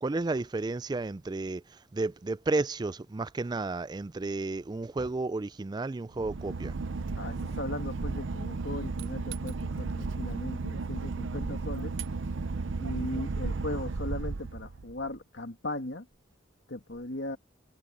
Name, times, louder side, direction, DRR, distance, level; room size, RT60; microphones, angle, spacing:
voice 1, 0.0-1.6 1.9-6.7, right 3 dB, 20° right, 0.3 m, -32 dB
Boat Water vehicle / Engine, 6.1-15.1, right 3 dB, 75° right, 0.6 m, -34 dB
voice 2, 7.2-11.9 12.8-16.1 16.7-17.4, left 2 dB, 65° left, 2.4 m, -38 dB
head